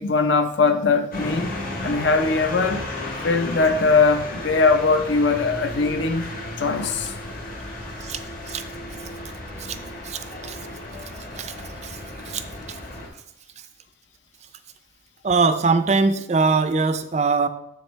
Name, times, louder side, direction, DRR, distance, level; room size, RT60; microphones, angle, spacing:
voice 1, 0.0-1.5 1.8-2.8 3.2-6.3 6.6-7.1, left 4 dB, 65° left, 0.6 m, -20 dB
sound 1, 1.1-13.1, left 1 dB, 45° left, 1.3 m, -34 dB
voice 2, 10.0-10.6 11.4-11.5 11.8-12.0 12.3-12.4 12.7-12.8 15.2-17.5, right 4 dB, 35° right, 0.4 m, -22 dB
7.3 x 6.5 x 3.1 m
head